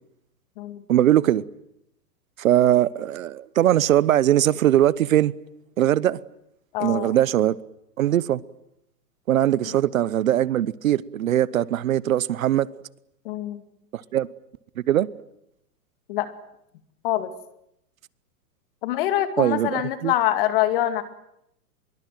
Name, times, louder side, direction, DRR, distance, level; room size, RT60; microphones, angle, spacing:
voice 1, 0.9-1.4 2.4-5.3 5.8-6.2 6.8-7.6 8.0-8.4 9.3-12.7 13.9-14.3 14.9-15.1 19.4-20.1, right 12 dB, 55° right, 0.9 m, -20 dB
voice 2, 6.7-7.1 9.6-9.7 13.2-13.6 16.1-16.3 17.0-17.3 18.8-21.0, left 13 dB, 35° left, 2.2 m, -25 dB
24.5 x 23.0 x 9.1 m
hypercardioid pair, 170°, 48 cm